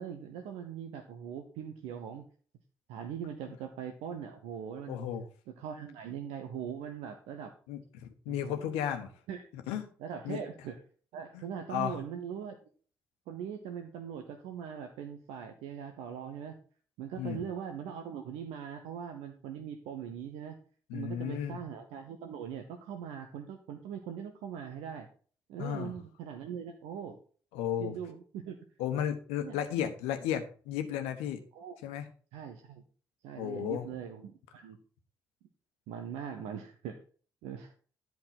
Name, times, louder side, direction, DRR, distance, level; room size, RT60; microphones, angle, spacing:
voice 1, 0.0-2.2 2.9-5.0 5.6-7.5 8.3-8.7 9.3-9.5 10.0-10.8 11.1-12.6 13.3-16.6 17.0-20.6 20.9-25.1 25.5-27.2 27.8-28.6 29.4-29.8 31.5-31.9 32.3-32.8 33.2-34.8 35.9-37.0 37.4-37.7, right 8 dB, 65° right, 5 dB, 0.9 m, -41 dB
voice 2, 4.9-5.2 7.7-9.1 9.5-9.8 10.2-10.4 11.3-12.0 17.2-17.4 20.9-21.6 25.6-25.9 27.5-27.9 28.8-31.4 31.8-32.0 33.4-33.9, left 9 dB, 70° left, 7 dB, 1.2 m, -34 dB
10.5 x 4.7 x 5.8 m, 0.42 s
figure-of-eight pair, 40°, 11 cm